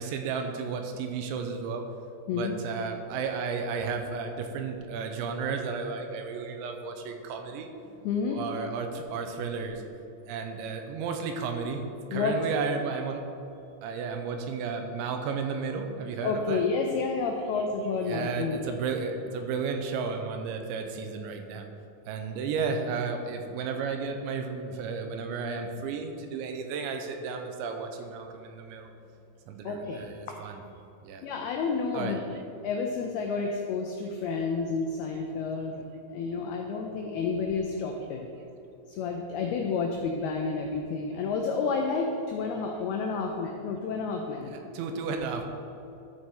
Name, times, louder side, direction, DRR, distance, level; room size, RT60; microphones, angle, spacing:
voice 1, 0.0-1.8 2.3-7.7 8.3-9.8 10.3-13.2 13.8-16.6 17.5-17.7 18.0-21.7 22.1-28.9 29.5-30.6 31.0-31.3 31.9-32.2 44.5-45.5, right 5 dB, 85° right, 5 dB, 3.0 m, -33 dB
voice 2, 8.0-8.5 12.1-12.4 16.2-18.7 29.6-30.4 31.2-32.2 32.6-35.8 36.1-38.2 38.9-44.8, left 4 dB, 90° left, 2 dB, 2.2 m, -30 dB
13.0 x 6.3 x 4.3 m, 2.9 s
omnidirectional pair, 5.3 m